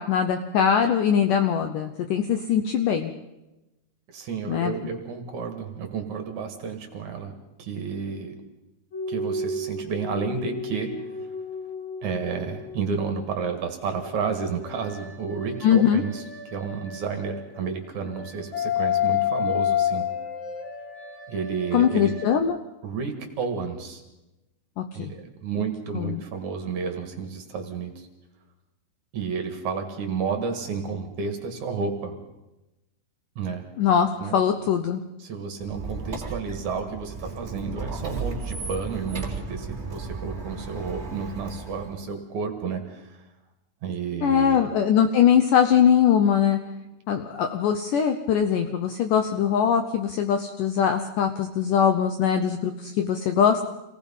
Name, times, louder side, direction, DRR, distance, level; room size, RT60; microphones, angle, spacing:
voice 1, 0.0-3.1 4.5-4.8 15.6-16.0 21.7-22.6 24.8-25.1 25.9-26.2 33.8-35.0 44.2-46.6 47.1-53.6, left 8 dB, 75° left, 7 dB, 2.0 m, -21 dB
voice 2, 4.1-7.3 7.6-8.4 9.1-11.3 12.0-20.1 21.3-22.1 22.8-24.0 24.9-28.1 29.1-32.2 33.4-33.7 34.2-34.4 35.2-43.2 43.8-44.6, right 5 dB, 55° right, 5 dB, 2.8 m, -31 dB
sound 1, 8.9-13.0 14.0-17.6 18.1-22.4, left 7 dB, 40° left, 2.0 m, -31 dB
Squeak, 35.6-42.0, right 3 dB, 15° right, 3.2 m, -34 dB
27.5 x 18.5 x 5.5 m, 1.0 s
omnidirectional pair, 4.7 m